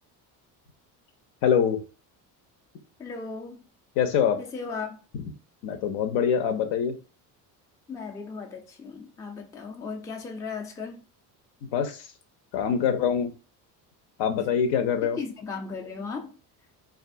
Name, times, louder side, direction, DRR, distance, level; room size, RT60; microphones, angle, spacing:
voice 1, 1.4-1.8 4.0-4.4 5.1-5.2 5.6-7.0 11.6-12.1 12.5-13.3 14.2-15.2, left 7 dB, 65° left, 0.7 m, -24 dB
voice 2, 3.0-3.7 4.4-5.0 7.9-11.0 15.2-16.4, left 4 dB, 10° left, 0.3 m, -36 dB
2.6 x 2.4 x 2.5 m
supercardioid pair, 75°, 47 cm